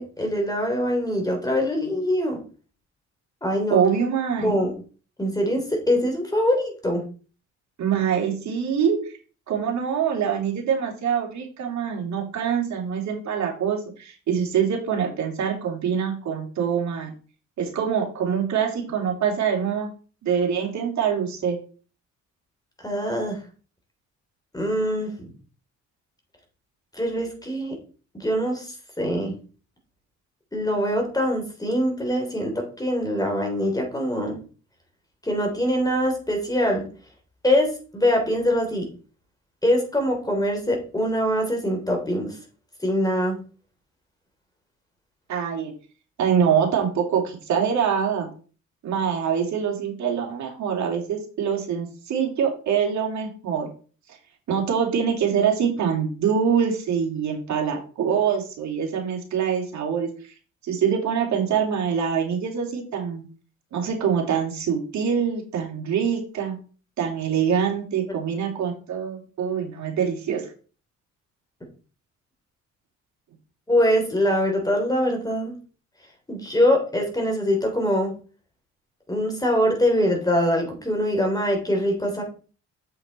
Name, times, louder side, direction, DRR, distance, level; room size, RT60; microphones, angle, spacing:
voice 1, 0.0-2.4 3.4-3.8 4.4-4.7 5.2-7.0 22.8-23.4 24.5-25.1 26.9-27.8 28.1-28.7 29.0-29.3 30.5-34.4 35.2-36.9 37.4-38.9 39.6-42.3 42.8-43.4 73.7-75.5 76.3-78.1 79.1-82.2, equal, 10° left, 2 dB, 3.3 m, -23 dB
voice 2, 3.7-4.7 7.8-9.0 9.5-17.1 17.6-19.9 20.2-21.6 45.3-45.7 46.2-48.3 48.8-53.7 54.5-60.1 60.6-63.2 63.7-66.6 67.0-70.4, right 7 dB, 65° right, 0 dB, 2.8 m, -24 dB
7.6 x 5.8 x 4.2 m, 0.38 s
cardioid pair, 90°, 30 cm